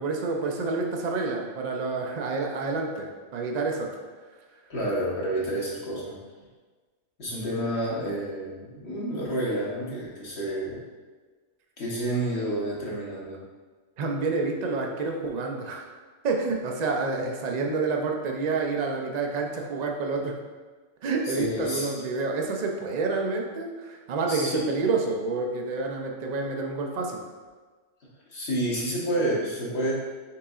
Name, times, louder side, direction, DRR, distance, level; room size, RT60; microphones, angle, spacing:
voice 1, 0.0-3.9 14.0-15.8 16.2-20.3 21.0-27.2, right 3 dB, 75° right, 1 dB, 0.3 m, -28 dB
voice 2, 4.7-6.2 7.2-10.8 11.8-13.4 21.2-21.9 24.3-24.7 28.3-29.9, right 1 dB, 55° left, -5 dB, 1.4 m, -29 dB
5.7 x 3.8 x 2.4 m, 1.4 s
omnidirectional pair, 1.3 m